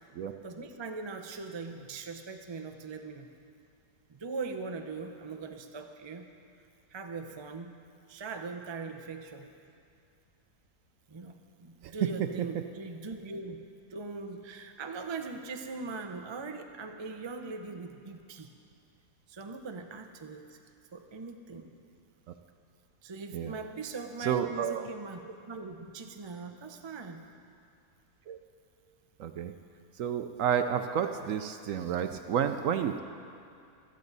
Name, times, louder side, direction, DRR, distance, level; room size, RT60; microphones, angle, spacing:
voice 1, 0.4-3.3 4.1-6.3 6.9-7.7 8.1-9.5 11.1-13.6 13.9-18.5 19.3-20.6 20.9-21.7 23.0-27.3, right 4 dB, 40° right, 5 dB, 0.4 m, -41 dB
voice 2, 24.2-24.9 28.3-28.4 29.2-29.5 30.0-33.0, right 8 dB, 70° right, 8 dB, 0.8 m, -30 dB
16.0 x 13.0 x 4.0 m, 2.5 s
omnidirectional pair, 1.7 m